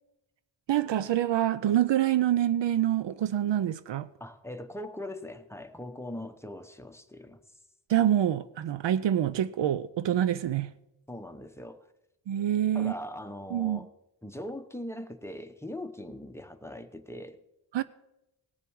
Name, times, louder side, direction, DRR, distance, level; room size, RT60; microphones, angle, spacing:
voice 1, 0.7-4.1 7.9-10.7 12.3-12.9 13.5-13.8 17.7-17.8, right 11 dB, 70° right, 0.5 m, -26 dB
voice 2, 4.2-7.4 11.1-11.9 12.7-13.9 14.2-17.4, left 1 dB, 5° left, 0.8 m, -40 dB
18.0 x 6.8 x 4.6 m
wide cardioid pair, 85°, 44 cm